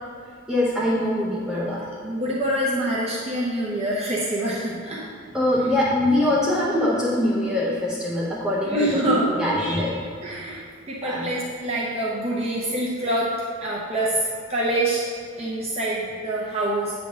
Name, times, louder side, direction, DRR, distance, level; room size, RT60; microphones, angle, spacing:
voice 1, 0.5-1.9 5.0-5.1 5.3-10.1 11.0-11.3, left 1 dB, 5° right, -6 dB, 0.7 m, -23 dB
voice 2, 2.0-5.0 8.6-9.3 10.2-10.6 10.9-13.3 13.6-15.0 15.4-16.9, right 1 dB, 35° right, -5 dB, 0.8 m, -25 dB
9.0 x 3.4 x 6.6 m, 2.3 s
head